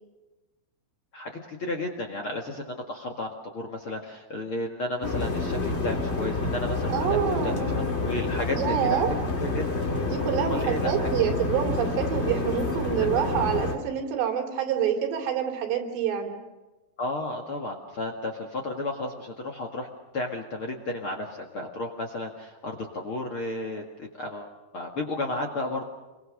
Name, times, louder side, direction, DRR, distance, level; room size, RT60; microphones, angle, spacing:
voice 1, 1.1-9.0 9.4-9.8 10.5-11.1 13.0-13.1 17.0-19.9 20.1-25.8, left 2 dB, 45° left, 2 dB, 1.9 m, -33 dB
sound 1, 5.0-13.7, left 3 dB, 30° left, 1.3 m, -28 dB
voice 2, 6.9-7.8 8.5-9.1 10.0-16.4, right 9 dB, 85° right, 3 dB, 4.8 m, -27 dB
28.5 x 23.0 x 6.5 m, 1.1 s
omnidirectional pair, 4.8 m